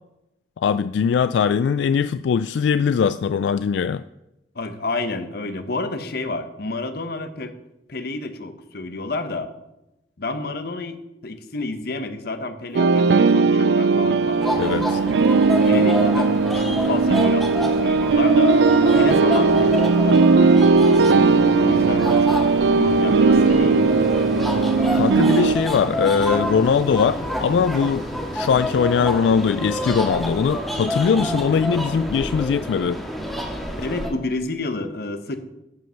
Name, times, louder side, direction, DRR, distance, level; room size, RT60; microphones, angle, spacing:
voice 1, 0.6-4.0 14.6-15.0 24.9-28.1 28.3-33.0, left 6 dB, 85° left, 12 dB, 0.3 m, -21 dB
voice 2, 4.5-7.5 7.9-9.5 10.2-14.6 15.6-18.6 18.9-24.3 33.8-35.4, left 2 dB, 60° left, 8 dB, 1.0 m, -30 dB
sound 1, 12.7-25.5, right 4 dB, 75° right, 0.4 m, -17 dB
sound 2, 13.0-32.0, equal, 20° right, 2.0 m, -36 dB
sound 3, 14.4-34.1, equal, ahead, 1.8 m, -28 dB
13.5 x 5.3 x 5.7 m, 0.91 s
head